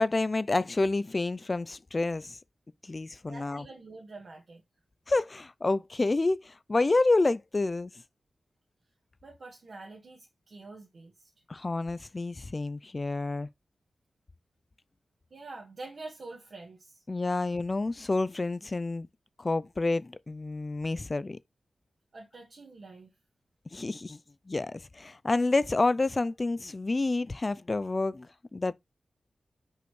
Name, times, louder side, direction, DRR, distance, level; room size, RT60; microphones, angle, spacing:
voice 1, 0.0-2.4 2.8-3.7 5.1-7.9 11.5-13.5 17.1-19.1 19.4-21.4 23.7-24.2 24.5-28.3 28.5-28.7, left 2 dB, 30° left, 0.4 m, -28 dB
voice 2, 3.3-4.6 9.2-11.3 15.3-17.0 22.1-23.1, right 3 dB, 55° right, 1.6 m, -46 dB
6.2 x 5.6 x 3.1 m
wide cardioid pair, 155°, 0 cm